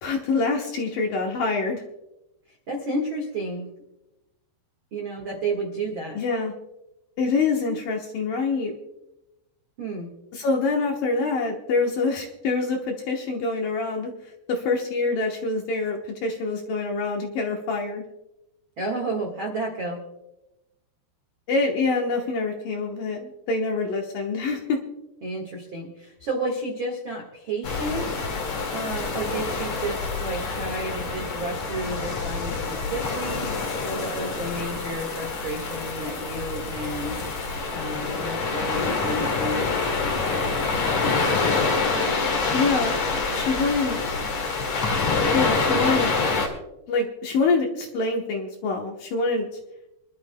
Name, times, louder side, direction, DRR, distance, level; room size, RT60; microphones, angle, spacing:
voice 1, 0.0-1.8 6.1-6.5 7.2-8.8 10.3-14.1 14.5-18.0 21.5-24.8 42.5-43.0 43.3-44.2 45.3-46.1 46.9-49.5, left 3 dB, 70° left, 1 dB, 2.2 m, -25 dB
voice 2, 2.7-3.7 4.9-6.2 9.8-10.1 18.8-20.0 25.2-28.3 28.7-33.5 33.8-37.2 37.7-39.7 40.1-41.8, right 2 dB, 85° right, 1 dB, 1.1 m, -32 dB
sound 1, 27.6-46.5, left 4 dB, 50° left, 2.9 m, -26 dB
27.0 x 12.0 x 2.2 m, 0.93 s
omnidirectional pair, 5.1 m